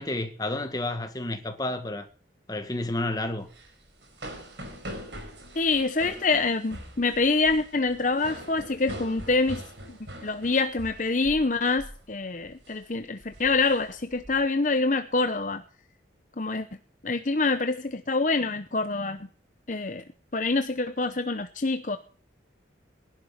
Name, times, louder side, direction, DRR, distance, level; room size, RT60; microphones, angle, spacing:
voice 1, 0.0-2.1 2.5-3.5, left 2 dB, 20° left, 1.7 m, -30 dB
Girl running up stairs and breathing, 3.4-11.5 11.8-12.0 12.4-12.7 13.2-14.3, equal, 70° right, 5.1 m, -42 dB
voice 2, 5.6-9.6 9.9-10.0 10.2-15.6 16.4-16.7 17.0-19.2 19.7-20.0 20.3-22.0, left 3 dB, 45° left, 0.9 m, -26 dB
19.5 x 11.5 x 5.9 m
head